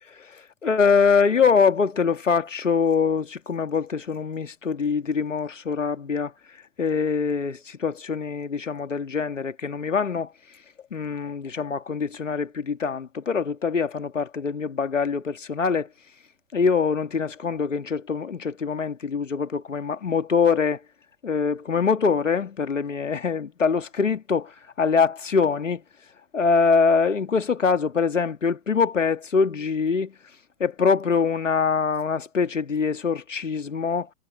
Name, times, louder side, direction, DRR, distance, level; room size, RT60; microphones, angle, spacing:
voice 1, 0.1-6.3 6.8-10.3 10.9-15.9 16.5-20.8 21.2-25.8 26.3-30.1 30.6-34.1, left 5 dB, 85° left, 2.2 m, -24 dB
figure-of-eight pair, 105°, 37 cm